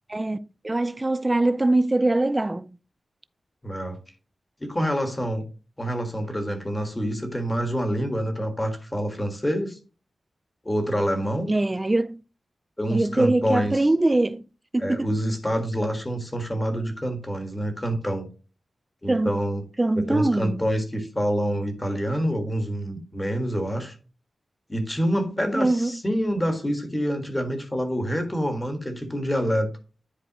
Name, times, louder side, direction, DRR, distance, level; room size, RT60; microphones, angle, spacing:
voice 1, 0.1-2.7 11.5-12.2 12.9-14.5 14.7-15.1 19.1-19.3 19.8-20.6 25.5-26.0, right 2 dB, 15° right, 0.3 m, -23 dB
voice 2, 3.6-4.0 4.6-5.4 5.8-9.8 10.6-11.5 12.8-13.8 14.8-18.3 19.0-19.6 20.0-23.9 24.7-29.7, equal, 15° left, 1.6 m, -27 dB
10.0 x 4.7 x 3.0 m
wide cardioid pair, 165°, 0 cm